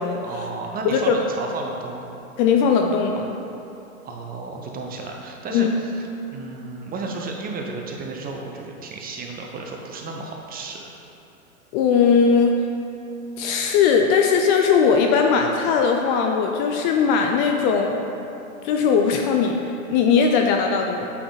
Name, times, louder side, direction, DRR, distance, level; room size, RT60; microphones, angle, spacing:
voice 1, 0.2-2.2 4.0-10.8, right 3 dB, 20° right, 1 dB, 0.7 m, -33 dB
voice 2, 0.8-1.2 2.4-3.3 5.5-5.7 11.7-12.6 13.4-18.0 18.6-19.6 19.9-21.1, left 6 dB, 35° left, 2 dB, 0.4 m, -19 dB
8.3 x 3.8 x 3.9 m, 2.9 s
hypercardioid pair, 110°, 41 cm